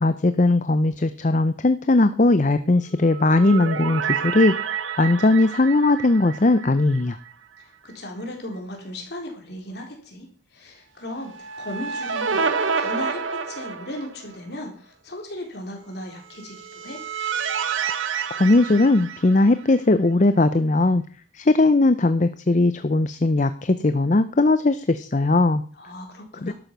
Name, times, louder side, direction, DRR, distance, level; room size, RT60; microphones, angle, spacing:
voice 1, 0.0-4.5 5.0-7.2 18.4-21.0 21.3-25.6 26.4-26.5, left 2 dB, 40° left, 11 dB, 0.6 m, -19 dB
sound 1, 3.0-7.3 7.6-7.7 11.2-14.4 16.4-19.8, right 6 dB, 90° right, 1.3 m, -29 dB
voice 2, 7.6-11.3 11.6-12.4 12.8-17.0 25.7-26.5, left 1 dB, 55° left, 1 dB, 3.9 m, -36 dB
12.0 x 9.2 x 6.0 m, 0.43 s
head